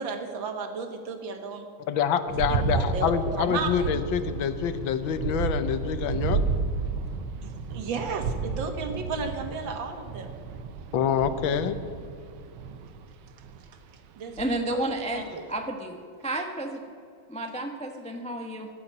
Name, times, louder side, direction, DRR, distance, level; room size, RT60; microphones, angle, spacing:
voice 1, 0.0-1.7 2.5-3.9 7.4-10.3 14.2-14.4 14.7-15.4, right 4 dB, 70° right, 6 dB, 2.0 m, -34 dB
voice 2, 1.9-6.4 10.9-11.8, left 8 dB, 75° left, 11 dB, 1.5 m, -26 dB
sound 1, 2.3-13.7 14.4-14.8 15.2-15.3, right 5 dB, 85° right, 1.7 m, -32 dB
voice 3, 14.4-15.2 15.5-16.0 16.2-16.8 17.3-18.7, right 1 dB, 5° left, 4 dB, 0.5 m, -31 dB
14.5 x 7.0 x 9.2 m, 2.4 s
omnidirectional pair, 2.2 m